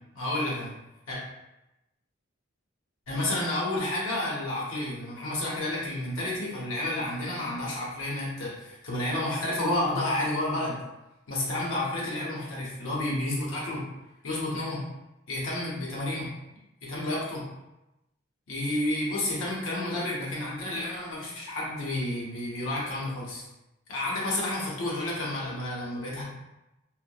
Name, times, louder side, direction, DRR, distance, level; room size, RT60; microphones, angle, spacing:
voice 1, 0.1-0.7 1.1-1.2 3.1-10.8 11.3-13.8 14.2-14.8 15.3-16.3 16.8-17.4 18.5-23.4 23.9-26.2, left 1 dB, 90° left, -4 dB, 0.8 m, -30 dB
2.8 x 2.1 x 2.2 m, 0.95 s
head